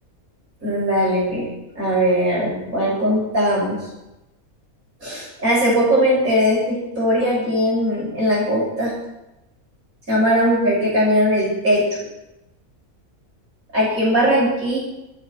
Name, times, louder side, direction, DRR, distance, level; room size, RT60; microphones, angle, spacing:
voice 1, 0.6-1.5 1.8-3.8 5.0-8.9 10.1-11.9 13.7-14.8, equal, 65° right, -6 dB, 7.4 m, -19 dB
24.5 x 10.5 x 4.6 m, 0.92 s
omnidirectional pair, 1.5 m